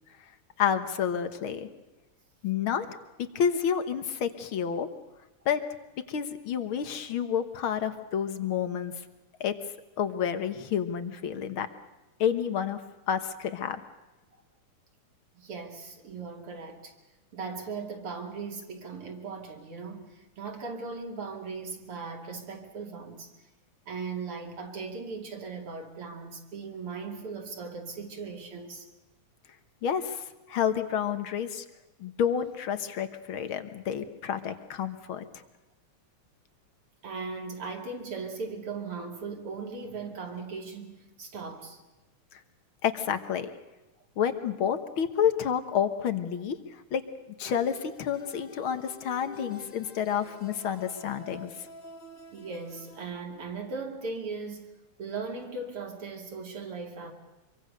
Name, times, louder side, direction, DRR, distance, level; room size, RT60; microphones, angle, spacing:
voice 1, 0.6-1.7 2.4-2.9 3.2-4.9 5.5-5.6 6.1-8.9 9.4-9.6 10.0-11.7 12.2-12.8 13.1-13.8 29.8-31.7 32.0-35.2 42.3-42.4 42.8-43.5 44.2-47.0 47.4-51.5, left 8 dB, 55° left, 1.6 m, -29 dB
voice 2, 15.3-16.9 17.3-23.3 23.9-28.9 37.0-41.8 49.2-49.4 50.7-50.8 52.3-54.7 55.0-57.1, right 4 dB, 50° right, 3.3 m, -38 dB
sound 1, 47.4-53.0, left 1 dB, 30° left, 2.1 m, -48 dB
25.5 x 24.0 x 6.6 m
omnidirectional pair, 3.5 m